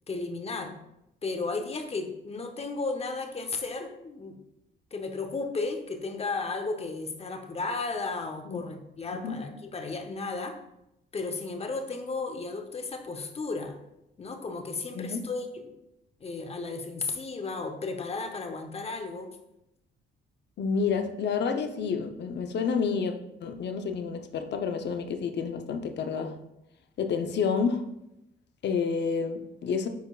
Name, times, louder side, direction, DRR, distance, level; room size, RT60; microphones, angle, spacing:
voice 1, 0.1-0.8 1.2-4.4 4.9-10.6 11.1-13.8 14.2-15.7 16.2-19.4, left 3 dB, 30° left, 6 dB, 0.9 m, -34 dB
voice 2, 14.9-15.3 20.6-23.1 23.4-26.4 27.0-27.9 28.6-29.9, left 5 dB, 60° left, 6 dB, 0.7 m, -29 dB
10.5 x 4.4 x 2.4 m, 0.86 s
cardioid pair, 90°, 20 cm